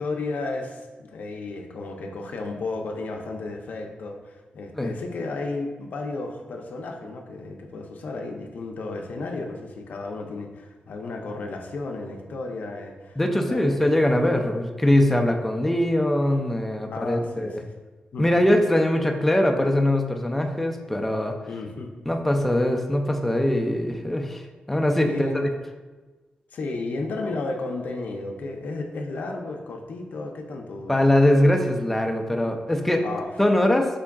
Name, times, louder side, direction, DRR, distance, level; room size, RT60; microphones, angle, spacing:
voice 1, 0.0-13.2 13.5-13.9 16.9-17.7 18.1-18.3 21.5-21.9 25.0-25.5 26.5-31.0 33.0-33.3, left 3 dB, 65° left, 2 dB, 0.5 m, -33 dB
voice 2, 13.2-17.6 18.2-21.3 22.1-24.4 24.7-25.5 30.9-33.0 33.4-33.9, left 1 dB, 5° left, 3 dB, 0.3 m, -22 dB
5.2 x 3.5 x 2.3 m, 1.3 s
wide cardioid pair, 160°, 3 cm